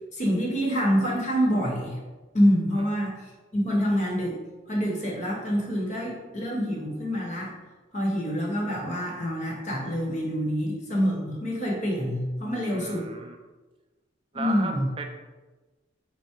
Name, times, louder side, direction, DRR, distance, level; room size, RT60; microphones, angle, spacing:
voice 1, 0.0-2.0 2.3-4.4 4.7-7.5 7.9-13.1 14.3-14.9, equal, 35° left, -2 dB, 0.9 m, -26 dB
voice 2, 12.7-13.4 14.3-15.1, right 3 dB, 30° right, 4 dB, 0.4 m, -35 dB
4.6 x 2.0 x 4.3 m, 1.2 s
head